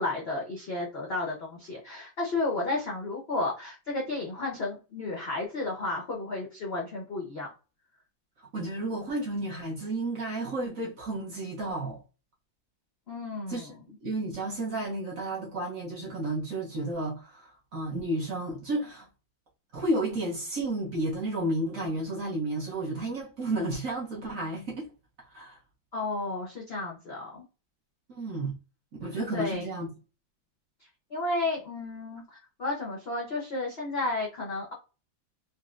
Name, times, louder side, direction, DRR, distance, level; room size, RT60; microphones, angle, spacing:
voice 1, 0.0-7.5 13.1-13.8 25.9-27.4 29.3-29.7 31.1-34.7, left 2 dB, 65° left, 0.6 m, -32 dB
voice 2, 8.5-12.0 13.5-13.7 14.0-19.1 19.7-24.9 25.3-25.6 28.1-28.6 29.0-29.9, right 1 dB, 55° right, 1.0 m, -32 dB
4.1 x 2.1 x 2.4 m
omnidirectional pair, 2.2 m